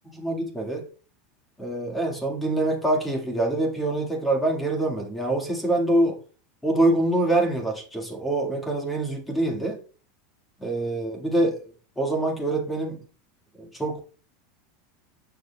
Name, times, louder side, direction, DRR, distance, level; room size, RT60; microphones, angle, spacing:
voice 1, 0.0-0.8 1.6-6.2 6.6-9.8 10.6-11.6 12.0-13.0 13.6-14.0, right 2 dB, 5° left, 1.9 m, -25 dB
7.0 x 6.2 x 2.3 m
supercardioid pair, 130°, 0 cm